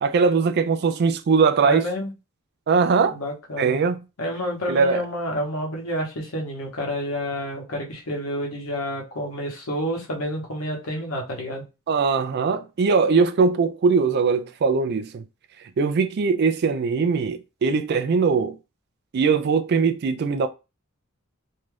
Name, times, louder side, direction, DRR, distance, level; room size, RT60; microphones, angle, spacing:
voice 1, 0.0-1.8 2.7-3.2 3.6-4.0 4.7-5.0 11.9-15.2 15.8-18.6 19.1-20.5, right 5 dB, 50° right, 0.3 m, -21 dB
voice 2, 1.6-2.1 3.1-3.8 4.2-11.6, equal, 80° left, 0.9 m, -29 dB
2.6 x 2.3 x 3.2 m
head